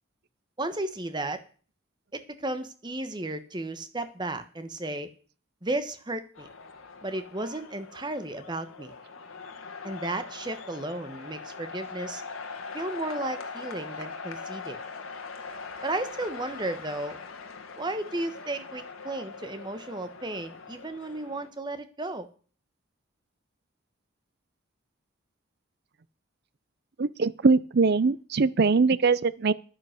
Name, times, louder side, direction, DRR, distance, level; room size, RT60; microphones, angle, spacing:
voice 1, 0.6-1.4 2.1-5.1 5.6-6.5 7.0-8.9 9.8-12.2 12.7-14.8 15.8-17.2 17.8-22.3, right 2 dB, 20° right, 1.1 m, -34 dB
sound 1, 6.3-21.5, left 4 dB, 85° left, 1.8 m, -41 dB
voice 2, 27.0-29.5, right 4 dB, 50° right, 0.5 m, -22 dB
10.5 x 9.6 x 6.5 m
head